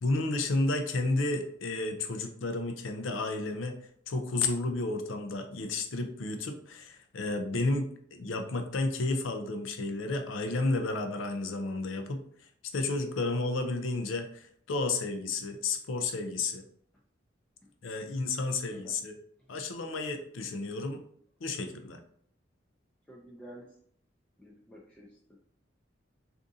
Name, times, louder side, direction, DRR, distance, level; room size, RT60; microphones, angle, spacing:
voice 1, 0.0-3.8 4.1-12.2 12.7-16.6 17.8-19.1 19.5-21.0 21.4-22.0, left 2 dB, 85° left, 5 dB, 0.5 m, -32 dB
voice 2, 23.1-23.7 24.4-25.4, equal, 5° left, -4 dB, 0.4 m, -50 dB
3.6 x 2.6 x 2.6 m, 0.64 s
head